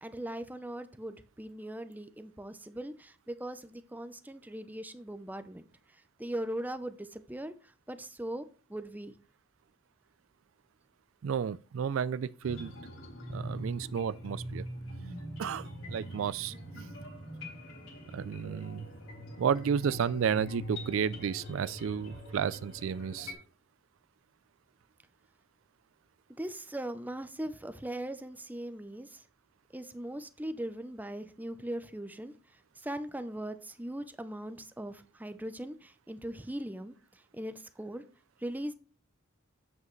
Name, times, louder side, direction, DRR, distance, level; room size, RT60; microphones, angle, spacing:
voice 1, 0.0-5.7 6.2-7.5 7.9-9.1 26.4-29.2 29.7-32.3 32.8-38.0 38.4-38.7, right 1 dB, 10° right, 0.6 m, -40 dB
voice 2, 11.2-12.7 13.3-14.7 15.4-16.9 18.1-18.9 19.4-23.4, right 7 dB, 75° right, 0.4 m, -32 dB
sound 1, 12.4-23.3, equal, 80° left, 4.4 m, -43 dB
8.1 x 7.3 x 3.2 m
head